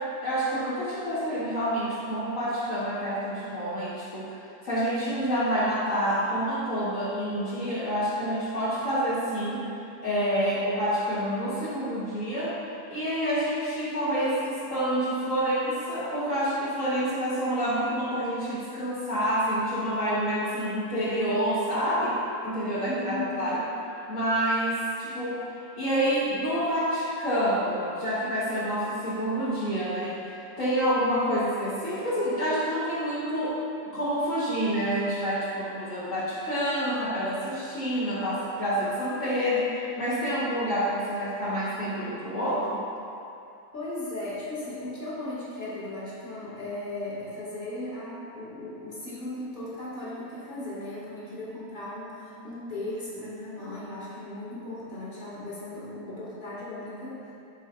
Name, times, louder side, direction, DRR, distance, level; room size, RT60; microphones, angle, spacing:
voice 1, 0.0-4.4 4.6-9.6 10.0-12.6 12.9-22.1 22.4-23.6 24.1-25.4 25.8-33.6 33.9-42.8, equal, 60° left, -11 dB, 1.6 m, -28 dB
voice 2, 22.8-23.5 43.7-57.2, left 2 dB, 30° left, -9 dB, 1.8 m, -37 dB
11.5 x 4.4 x 2.4 m, 2.7 s
omnidirectional pair, 1.6 m